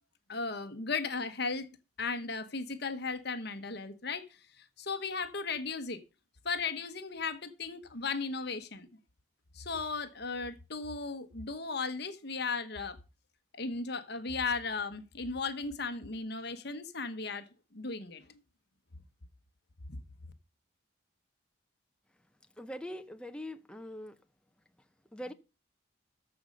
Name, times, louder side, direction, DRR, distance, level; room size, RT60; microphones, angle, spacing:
voice 1, 0.3-1.7 2.0-4.2 4.6-6.0 6.4-8.9 9.5-13.0 13.5-17.4 17.7-18.3, left 4 dB, 55° left, 1.2 m, -36 dB
voice 2, 22.6-24.2 25.1-25.3, equal, 5° left, 0.7 m, -42 dB
14.0 x 5.4 x 6.5 m
head